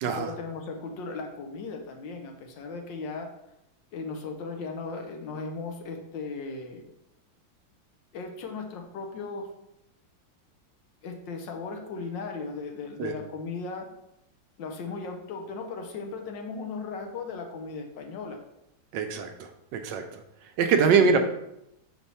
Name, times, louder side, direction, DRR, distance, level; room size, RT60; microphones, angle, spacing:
voice 1, 0.0-3.3 3.9-6.9 8.1-9.5 11.0-13.9 14.6-18.4 20.9-21.1, left 4 dB, 75° left, 4 dB, 1.5 m, -37 dB
voice 2, 18.9-19.3 19.7-20.0 20.6-21.2, right 5 dB, 75° right, 6 dB, 1.2 m, -22 dB
4.5 x 4.3 x 5.5 m, 0.83 s
omnidirectional pair, 2.1 m